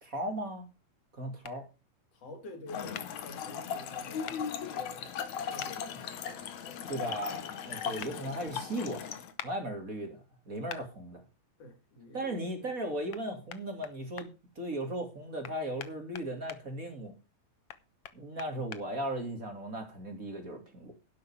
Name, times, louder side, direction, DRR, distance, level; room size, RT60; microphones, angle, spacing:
voice 1, 0.0-0.7 1.1-1.7 6.9-9.0 9.4-11.2 12.1-14.3 14.6-17.1 18.1-20.9, right 1 dB, 25° right, 2.8 m, -37 dB
sound 1, 1.4-1.6 2.9-3.1 4.3-4.4 5.6-5.7 8.0-8.1 9.4-9.5 10.7-10.8 13.1-13.2 13.5-14.3 15.4-16.6 17.7-18.8, left 10 dB, 85° left, 1.2 m, -43 dB
voice 2, 2.1-5.2 5.5-7.0 7.3-7.4 8.1-8.3 11.6-12.7 18.5-18.7, left 2 dB, 45° left, 3.7 m, -49 dB
Trickle dribble / Fill (with liquid), 2.7-9.3, left 7 dB, 60° left, 2.5 m, -38 dB
11.5 x 11.5 x 4.9 m
omnidirectional pair, 4.1 m